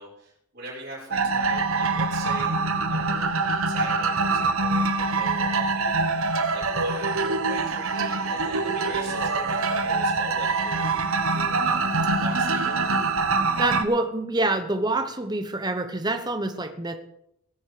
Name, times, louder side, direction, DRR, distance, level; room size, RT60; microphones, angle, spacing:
voice 1, 0.0-2.6 2.9-10.9 11.3-11.9 12.2-12.9, right 2 dB, 45° right, -5 dB, 6.0 m, -40 dB
sound 1, 1.1-13.8, right 3 dB, 80° right, 1.3 m, -24 dB
voice 2, 13.6-16.9, right 2 dB, 20° right, 7 dB, 1.0 m, -26 dB
17.5 x 10.5 x 5.0 m, 0.76 s
head